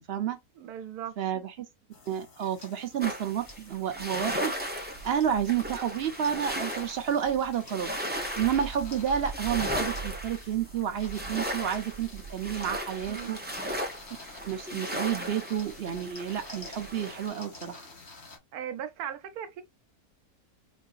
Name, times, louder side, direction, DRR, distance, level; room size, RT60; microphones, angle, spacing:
voice 1, 0.0-0.4 1.2-1.7 2.1-13.4 14.5-17.9, right 9 dB, 55° right, 0.7 m, -30 dB
voice 2, 0.6-1.2 13.1-13.4 18.5-19.6, right 9 dB, 75° right, 1.2 m, -38 dB
sound 1, 1.9-18.4, left 3 dB, 45° left, 1.3 m, -49 dB
sound 2, 3.0-17.3, right 1 dB, 10° right, 0.7 m, -36 dB
4.6 x 2.6 x 2.4 m
omnidirectional pair, 1.6 m